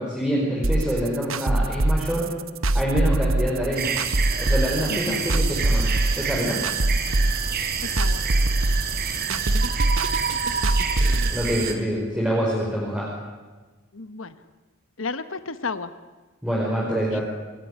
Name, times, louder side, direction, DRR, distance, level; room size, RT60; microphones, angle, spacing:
voice 1, 0.0-2.3 2.7-3.9 4.4-6.6 11.3-13.1 16.4-17.2, equal, 5° right, -4 dB, 5.4 m, -26 dB
sound 1, 0.6-11.3, right 2 dB, 70° right, 1.1 m, -23 dB
sound 2, 3.8-11.7, right 6 dB, 50° right, 3.4 m, -28 dB
voice 2, 4.9-5.2 7.9-8.2 13.9-14.3 15.0-15.9 17.1-17.2, left 4 dB, 70° left, 11 dB, 1.2 m, -32 dB
28.5 x 19.5 x 10.0 m, 1.3 s
head